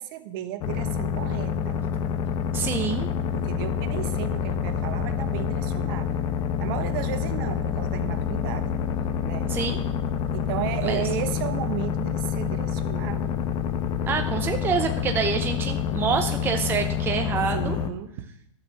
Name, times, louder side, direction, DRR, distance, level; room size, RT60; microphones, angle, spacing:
voice 1, 0.0-1.8 3.3-6.2 6.6-8.8 9.2-9.6 10.3-13.3 17.5-18.1, right 11 dB, 40° right, 11 dB, 1.1 m, -34 dB
sound 1, 0.6-17.9, left 7 dB, 25° left, 0.9 m, -27 dB
voice 2, 2.5-3.1 9.5-9.8 10.8-11.0 14.1-17.8, right 6 dB, 15° right, 5 dB, 0.7 m, -27 dB
13.0 x 6.6 x 6.7 m, 0.74 s
hypercardioid pair, 130°, 17 cm